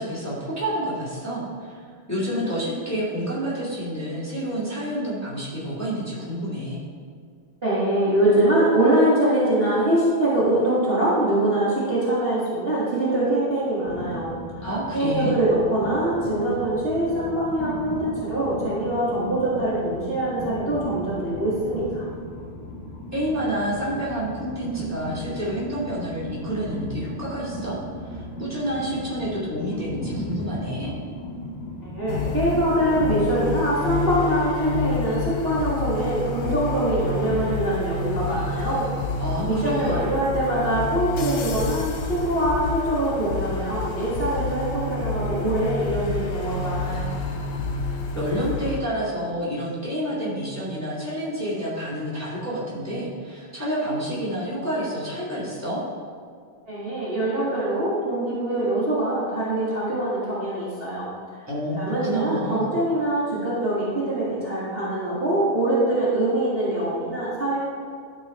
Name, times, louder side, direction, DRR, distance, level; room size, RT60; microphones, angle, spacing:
voice 1, 0.0-1.8 2.1-6.8 14.6-15.3 23.1-27.8 28.0-30.9 39.2-40.0 48.1-55.8 61.5-62.7, equal, 5° left, -8 dB, 2.2 m, -29 dB
voice 2, 7.6-14.7 14.9-22.0 31.9-38.9 39.4-47.1 56.7-61.1 61.8-67.6, right 1 dB, 30° right, -9 dB, 1.9 m, -23 dB
Train, 13.8-33.6, equal, 40° left, 1.4 m, -36 dB
sound 1, 32.1-48.8, left 4 dB, 75° left, 1.8 m, -29 dB
12.5 x 4.9 x 4.3 m, 2.2 s
omnidirectional pair, 2.4 m